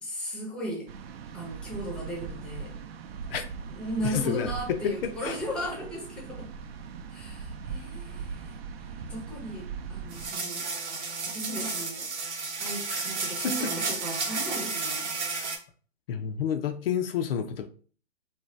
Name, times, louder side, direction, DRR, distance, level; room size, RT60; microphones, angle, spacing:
voice 1, 0.0-0.9 1.3-2.8 3.7-6.5 7.1-8.6 9.1-10.6 11.2-12.1 12.6-15.1, equal, 5° left, 0.5 m, -36 dB
sound 1, 0.9-10.3, right 5 dB, 60° right, 0.5 m, -40 dB
voice 2, 4.0-5.4 12.9-13.1 13.4-13.7 15.3-15.5 16.1-17.7, left 8 dB, 60° left, 0.4 m, -30 dB
sound 2, 10.1-15.6, right 4 dB, 85° right, 0.8 m, -32 dB
2.7 x 2.2 x 3.1 m
hypercardioid pair, 135°, 34 cm